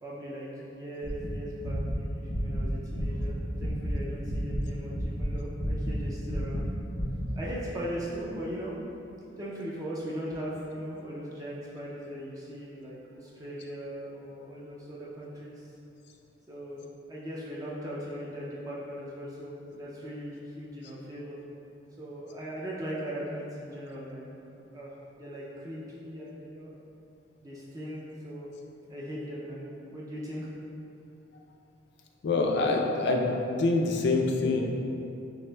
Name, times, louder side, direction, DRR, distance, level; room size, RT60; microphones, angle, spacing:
voice 1, 0.0-6.7 7.4-8.7 9.4-15.7 16.5-21.4 22.0-24.3 24.6-26.8 27.4-28.5 28.9-30.5, equal, 20° right, -6 dB, 0.4 m, -39 dB
sound 1, 1.0-3.9 4.2-6.7 6.9-7.3, equal, 85° left, 1.0 m, -31 dB
voice 2, 32.2-33.3 33.6-34.6, left 3 dB, 55° left, 1 dB, 0.4 m, -25 dB
6.0 x 2.5 x 2.2 m, 2.9 s
head